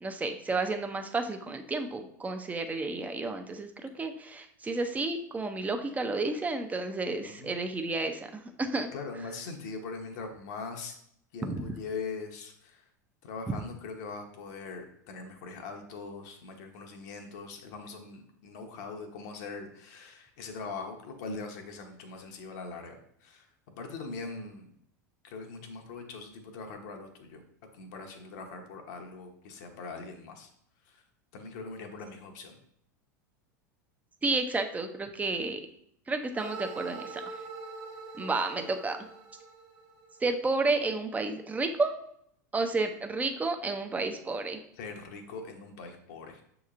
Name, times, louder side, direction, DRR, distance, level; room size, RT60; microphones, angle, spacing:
voice 1, 0.0-8.9 11.4-11.6 34.2-35.6 36.1-37.2 38.2-39.0 40.2-42.0 42.5-44.6, right 3 dB, 15° right, 6 dB, 0.5 m, -31 dB
voice 2, 7.1-7.6 8.9-10.9 11.3-12.9 13.2-24.7 25.2-27.4 27.7-30.5 30.9-31.0 31.3-32.5 44.8-46.4, left 4 dB, 65° left, 3 dB, 0.7 m, -41 dB
sound 1, 36.4-40.4, right 4 dB, 50° right, 0.9 m, -43 dB
6.2 x 2.9 x 2.4 m, 0.70 s
hypercardioid pair, 90°, 10 cm